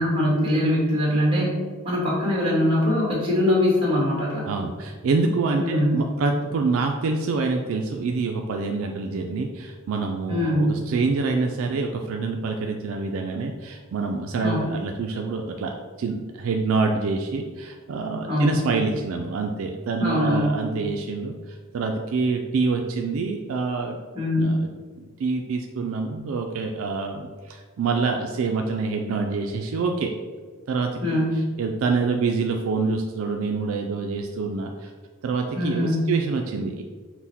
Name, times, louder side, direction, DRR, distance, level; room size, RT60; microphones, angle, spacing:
voice 1, 0.0-1.5 1.8-4.5 5.6-6.0 10.3-10.8 14.4-14.6 18.3-18.6 20.0-20.7 24.1-24.6 31.0-31.4 35.5-36.0, left 1 dB, 25° right, -4 dB, 1.4 m, -22 dB
voice 2, 4.5-24.0 24.4-24.7 25.0-30.1 30.7-31.2 31.6-34.9 35.2-36.8, right 4 dB, 65° right, 2 dB, 0.3 m, -26 dB
6.0 x 2.1 x 4.1 m, 1.5 s
head